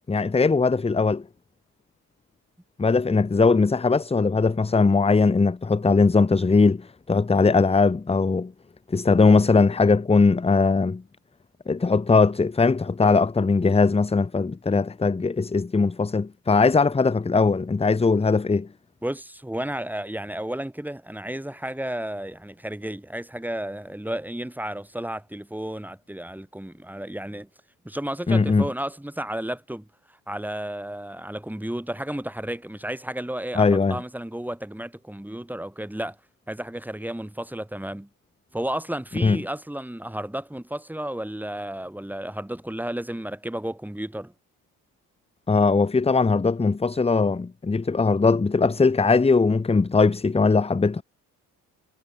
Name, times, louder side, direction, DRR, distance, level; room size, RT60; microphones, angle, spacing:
voice 1, 0.1-1.2 2.8-8.5 8.9-11.0 11.7-18.7 28.3-28.6 33.5-34.0 39.2-39.4 45.5-51.0, left 4 dB, 15° left, 1.0 m, -20 dB
voice 2, 19.0-27.5 27.8-29.9 30.3-36.2 36.5-38.1 38.5-44.3, right 1 dB, 5° right, 7.3 m, -32 dB
cardioid pair, 95°, 37 cm